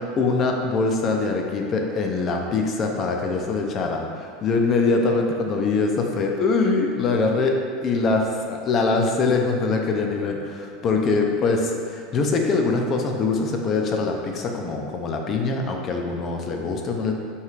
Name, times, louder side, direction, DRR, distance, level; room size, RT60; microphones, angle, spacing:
voice 1, 0.0-17.1, left 3 dB, 40° left, 2 dB, 0.5 m, -23 dB
5.3 x 3.2 x 2.5 m, 2.2 s
supercardioid pair, 110°, 0 cm